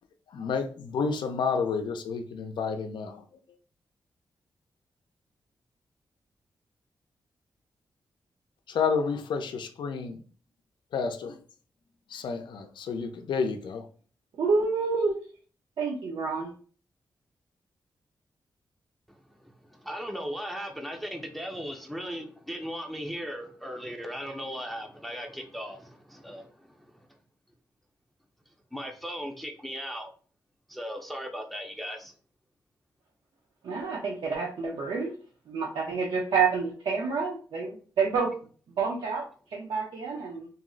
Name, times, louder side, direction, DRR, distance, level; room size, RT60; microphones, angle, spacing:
voice 1, 0.3-3.2 8.7-10.2 10.9-11.4 12.1-13.8, left 5 dB, 80° left, 6 dB, 0.4 m, -30 dB
voice 2, 14.4-15.2 15.8-16.5 33.6-35.1 35.5-38.3 38.8-39.3 39.5-40.5, right 5 dB, 90° right, -3 dB, 0.6 m, -28 dB
voice 3, 19.1-27.0 28.7-30.1 30.7-32.1, equal, ahead, 3 dB, 0.4 m, -37 dB
2.6 x 2.0 x 3.7 m, 0.41 s
cardioid pair, 85°, 8 cm